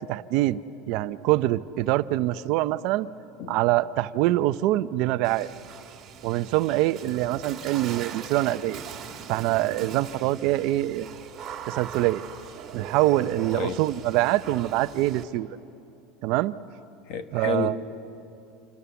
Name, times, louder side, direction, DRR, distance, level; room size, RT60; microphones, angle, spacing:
voice 1, 0.1-0.6 0.9-3.1 3.5-5.5 6.2-8.8 9.3-11.1 11.7-12.2 12.7-15.6 16.2-16.5 17.3-17.8, right 16 dB, 55° right, 13 dB, 0.6 m, -24 dB
Water / Splash splatter, 5.2-15.2, right 7 dB, 25° right, 2.2 m, -41 dB
voice 2, 17.0-17.8, left 7 dB, 50° left, 9 dB, 1.4 m, -31 dB
27.0 x 27.0 x 7.0 m, 2.8 s
supercardioid pair, 160°, 0 cm